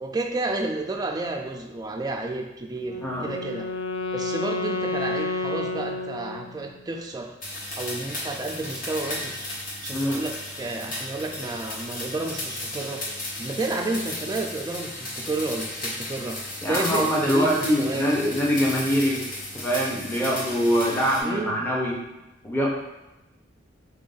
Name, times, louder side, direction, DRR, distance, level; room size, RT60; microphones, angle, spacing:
voice 1, 0.0-3.7 4.1-7.3 7.7-9.5 9.8-13.0 13.4-18.1 21.2-21.6, right 2 dB, 20° right, 2 dB, 0.3 m, -31 dB
Wind instrument woodwind instrument, 2.8-6.7, left 3 dB, 80° left, 0.3 m, -30 dB
sound 1, 7.4-21.2, left 1 dB, 45° left, 0.8 m, -35 dB
voice 2, 16.6-19.2 19.5-22.0 22.4-22.7, equal, 10° left, -4 dB, 0.7 m, -23 dB
3.9 x 2.5 x 3.9 m, 0.98 s
head